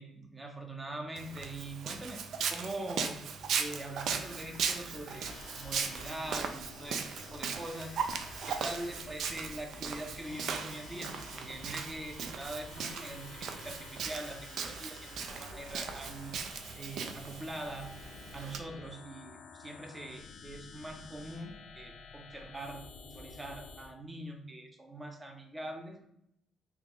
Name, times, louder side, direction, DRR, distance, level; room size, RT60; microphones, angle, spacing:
voice 1, 0.0-3.2 3.6-16.3 16.8-17.9 18.3-26.1, right 1 dB, 20° right, 4 dB, 0.6 m, -43 dB
Walk footsteps, 1.2-18.6, right 6 dB, 70° right, 0.3 m, -38 dB
sound 1, 3.9-23.9, left 4 dB, 85° left, 0.5 m, -50 dB
3.5 x 2.4 x 3.0 m, 0.78 s
cardioid pair, 90°, 0 cm